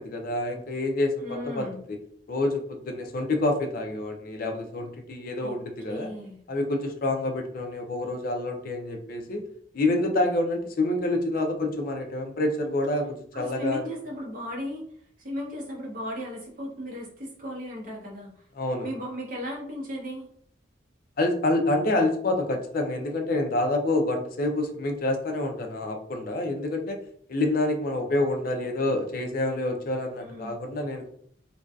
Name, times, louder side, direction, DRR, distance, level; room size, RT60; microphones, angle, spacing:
voice 1, 0.0-1.7 2.3-6.1 6.5-9.4 9.7-13.8 18.6-18.9 21.2-27.0 27.3-31.1, left 2 dB, 50° left, 4 dB, 0.4 m, -27 dB
voice 2, 1.2-1.8 5.4-5.6 5.9-6.4 13.3-14.8 15.2-18.4 18.8-20.3 30.2-30.6, equal, 50° right, -3 dB, 0.8 m, -36 dB
2.6 x 2.3 x 2.3 m, 0.62 s
head